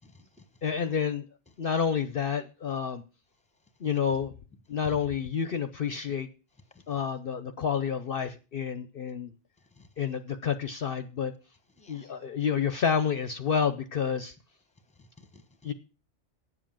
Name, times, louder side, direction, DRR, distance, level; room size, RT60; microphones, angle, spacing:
voice 1, 0.0-0.6 6.7-7.0 9.7-9.9 11.8-12.1 14.9-15.7, left 3 dB, 5° left, 1.1 m, -57 dB
voice 2, 0.6-1.2 1.6-3.0 3.8-4.3 4.7-6.3 6.9-9.3 10.0-11.3 11.9-14.3 15.6-15.7, left 7 dB, 55° left, 0.8 m, -29 dB
9.7 x 7.7 x 7.4 m
omnidirectional pair, 1.2 m